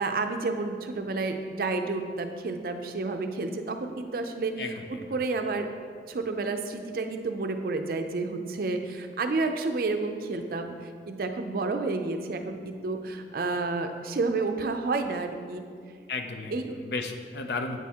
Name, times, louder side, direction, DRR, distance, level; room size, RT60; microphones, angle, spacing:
voice 1, 0.0-5.7 6.1-10.7 11.1-15.6 16.5-16.8, right 3 dB, 55° right, 6 dB, 0.4 m, -30 dB
voice 2, 4.6-5.1 16.1-17.8, left 3 dB, 70° left, 5 dB, 0.5 m, -34 dB
8.2 x 4.3 x 3.5 m, 2.2 s
head